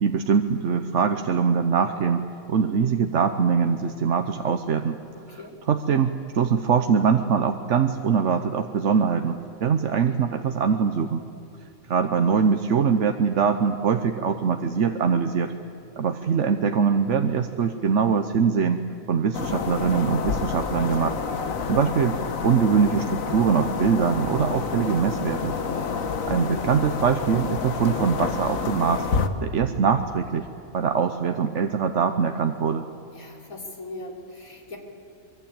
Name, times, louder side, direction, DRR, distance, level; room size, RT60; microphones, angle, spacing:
voice 1, 0.0-5.0 5.3-5.4 5.7-11.2 11.9-15.5 16.0-18.8 19.1-21.2 21.7-22.2 22.4-25.5 26.3-29.1 29.4-30.5 30.7-32.9, right 6 dB, 60° right, 7 dB, 1.2 m, -23 dB
voice 2, 5.1-5.5 25.7-26.3 33.1-34.8, left 2 dB, 90° left, 0 dB, 4.0 m, -40 dB
sound 1, 19.3-29.3, left 5 dB, 75° left, 1.7 m, -28 dB
24.0 x 23.5 x 8.8 m, 2.6 s
omnidirectional pair, 1.4 m